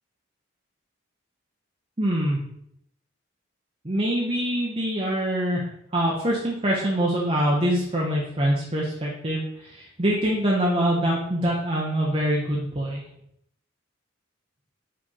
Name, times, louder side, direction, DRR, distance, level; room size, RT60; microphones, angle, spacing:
voice 1, 2.0-2.4 3.8-5.7 5.9-13.0, equal, 30° right, -4 dB, 0.9 m, -24 dB
5.1 x 3.4 x 5.5 m, 0.72 s
head